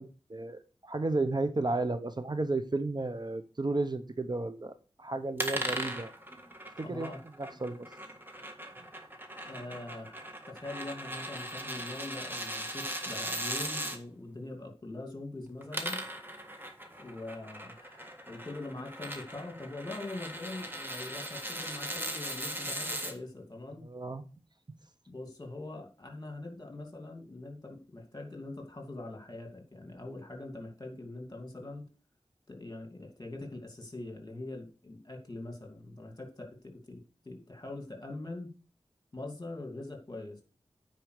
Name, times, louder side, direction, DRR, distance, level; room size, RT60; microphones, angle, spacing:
voice 1, 0.0-4.7 5.0-6.1 6.8-7.9 23.8-24.2, right 2 dB, 45° right, 0.9 m, -33 dB
sound 1, 5.4-14.0 15.5-23.1, right 1 dB, 20° right, 1.7 m, -39 dB
voice 2, 6.8-7.2 9.4-16.0 17.0-23.9 25.1-31.8 32.5-37.0 37.2-38.5 39.1-40.4, left 2 dB, 40° left, 2.6 m, -43 dB
9.3 x 4.7 x 6.6 m
wide cardioid pair, 65°, 11 cm